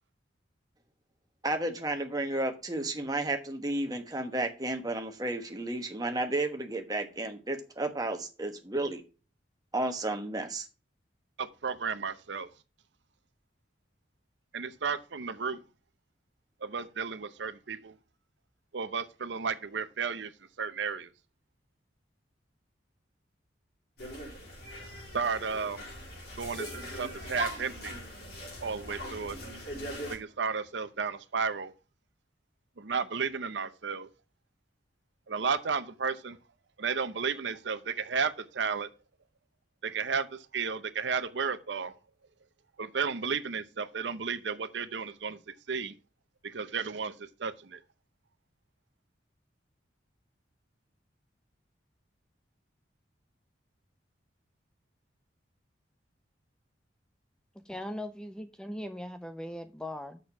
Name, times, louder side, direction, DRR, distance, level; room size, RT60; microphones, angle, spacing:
voice 1, 1.4-9.0 9.7-10.7, right 2 dB, 20° right, 1.2 m, -32 dB
voice 2, 11.4-12.5 14.5-15.6 16.6-17.9 18.7-20.3 20.6-21.1 25.1-25.8 26.4-28.0 28.6-29.4 30.1-31.7 32.8-34.1 35.3-36.4 36.8-38.9 39.8-42.0 42.8-45.9 46.4-47.8, right 5 dB, 75° right, 0.7 m, -33 dB
sound 1, 24.0-30.2, equal, 55° left, 4.3 m, -40 dB
voice 3, 57.7-60.2, left 1 dB, 5° left, 0.4 m, -39 dB
6.6 x 6.4 x 5.7 m
head